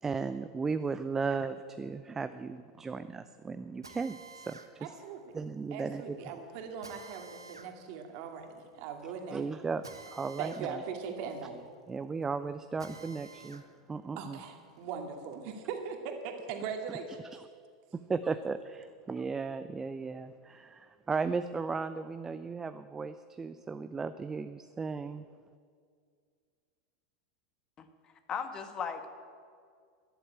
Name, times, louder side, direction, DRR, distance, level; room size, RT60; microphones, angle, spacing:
voice 1, 0.0-4.9 5.3-6.2 9.3-10.8 11.9-13.6 13.9-14.4 18.1-25.2, right 4 dB, 20° right, 11 dB, 0.6 m, -36 dB
Drill, 3.8-13.7 14.1-15.7, right 4 dB, 90° right, 1.2 m, -53 dB
voice 2, 4.8-5.4 5.7-9.4 10.4-11.6 14.2-17.3, right 6 dB, 55° right, 4 dB, 2.3 m, -40 dB
voice 3, 28.3-29.1, left 6 dB, 35° left, 8 dB, 1.6 m, -36 dB
13.5 x 11.5 x 8.9 m, 2.1 s
figure-of-eight pair, 85°, 2 cm